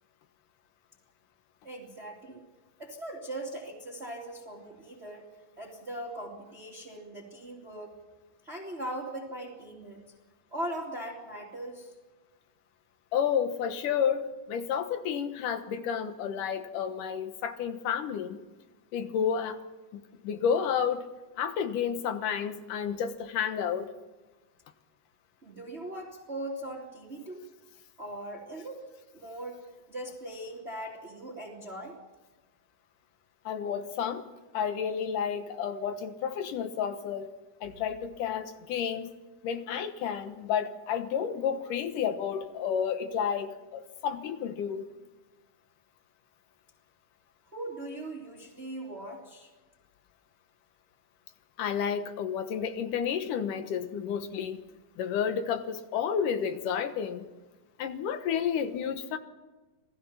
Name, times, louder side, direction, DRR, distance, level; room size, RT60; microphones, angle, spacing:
voice 1, 1.6-2.4 2.8-5.3 5.6-7.9 8.4-10.0 10.5-11.9 25.4-27.4 28.0-28.8 29.1-29.6 29.9-32.0 47.5-49.5, right 1 dB, 20° right, -3 dB, 2.8 m, -40 dB
voice 2, 13.1-18.4 18.9-19.6 19.9-21.1 21.4-23.9 33.5-34.3 34.5-37.3 37.6-39.1 39.4-44.8 51.6-54.6 55.0-57.2 57.8-59.2, left 7 dB, 75° left, 8 dB, 2.8 m, -31 dB
27.5 x 19.0 x 5.8 m, 1.2 s
omnidirectional pair, 3.8 m